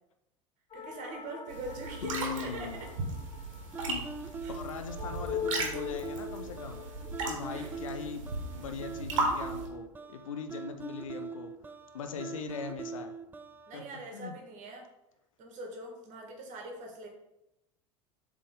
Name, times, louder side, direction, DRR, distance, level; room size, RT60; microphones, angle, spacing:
sound 1, 0.7-9.5, left 9 dB, 35° left, 0.9 m, -43 dB
voice 1, 0.7-2.9 4.4-4.6 7.5-7.8 13.7-14.9 15.4-17.1, right 2 dB, 50° right, 1 dB, 1.9 m, -42 dB
sound 2, 1.5-9.7, right 3 dB, 70° right, 1.5 m, -36 dB
voice 2, 2.0-2.8 3.9-4.1 4.5-6.8 7.3-11.5 11.9-13.1 13.7-13.8 14.1-14.3, left 6 dB, 80° left, 7 dB, 0.6 m, -40 dB
sound 3, 3.7-13.8, right 4 dB, 10° right, 0.4 m, -42 dB
7.4 x 3.6 x 3.7 m, 0.89 s
hypercardioid pair, 80°, 17 cm